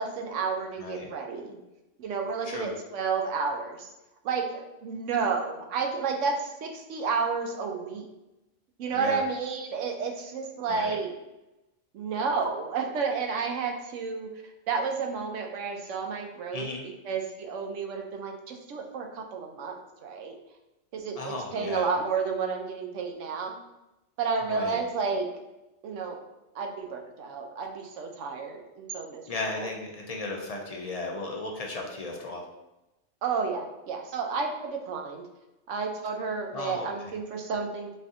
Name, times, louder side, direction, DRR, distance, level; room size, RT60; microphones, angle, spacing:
voice 1, 0.0-1.6 2.0-3.9 4.2-8.1 8.8-11.1 11.9-20.4 20.9-23.6 24.2-25.3 25.8-26.2 26.5-29.7 33.2-35.3 35.7-38.0, right 5 dB, 90° right, 3 dB, 1.0 m, -31 dB
voice 2, 16.5-16.8 21.2-21.9 24.5-24.8 29.3-32.4 36.5-37.1, left 2 dB, 50° left, 1 dB, 0.4 m, -35 dB
4.3 x 2.7 x 3.6 m, 0.96 s
omnidirectional pair, 1.2 m